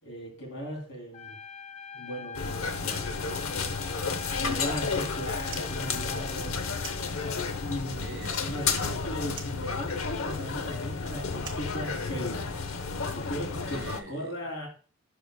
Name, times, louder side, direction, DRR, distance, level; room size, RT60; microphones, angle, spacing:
voice 1, 0.0-1.4 1.9-2.8 4.4-6.6 7.6-8.1 8.4-12.5 13.1-14.7, equal, 65° left, 3.3 m, -37 dB
Trumpet, 1.1-7.9, left 6 dB, 30° left, 0.5 m, -44 dB
sound 1, 2.3-14.0, left 4 dB, 90° left, 0.8 m, -32 dB
voice 2, 2.6-3.8 8.0-8.6 13.2-13.3 13.7-14.3, right 2 dB, 50° right, 3.0 m, -44 dB
Fire, 5.4-7.7 7.9-8.9 9.3-12.5, right 5 dB, 25° right, 1.1 m, -47 dB
11.0 x 5.0 x 2.2 m
head